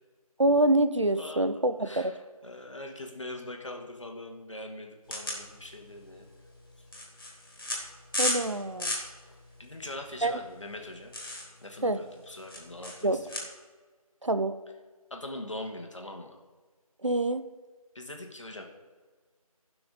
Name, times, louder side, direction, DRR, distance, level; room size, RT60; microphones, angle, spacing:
voice 1, 0.4-2.1 8.2-8.9 10.2-10.4 11.8-12.0 13.0-13.2 14.2-14.5 17.0-17.4, right 2 dB, 55° right, 11 dB, 0.5 m, -26 dB
voice 2, 1.2-6.3 9.6-11.1 11.6-12.9 15.1-16.4 17.9-18.7, left 1 dB, 55° left, 2 dB, 1.6 m, -42 dB
sound 1, 5.1-13.4, left 1 dB, 35° left, 2.4 m, -35 dB
15.5 x 5.9 x 4.0 m, 1.4 s
figure-of-eight pair, 175°, 19 cm